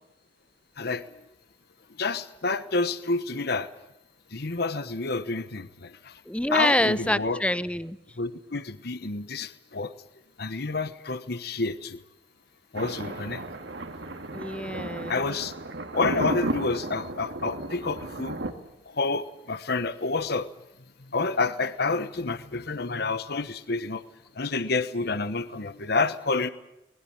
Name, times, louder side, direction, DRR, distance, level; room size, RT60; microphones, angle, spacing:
voice 1, 0.8-1.1 2.0-3.7 4.3-6.2 6.5-7.4 8.2-9.9 10.4-12.0 12.7-13.4 15.1-15.5 15.9-18.4 18.8-20.5 21.1-24.0 24.3-26.5, left 3 dB, 60° left, 13 dB, 1.2 m, -29 dB
voice 2, 6.3-8.0 14.3-15.2, left 1 dB, 5° left, 15 dB, 0.8 m, -26 dB
Thunder, 12.7-18.5, right 2 dB, 80° right, 2.4 m, -34 dB
23.5 x 20.5 x 8.7 m, 0.85 s
head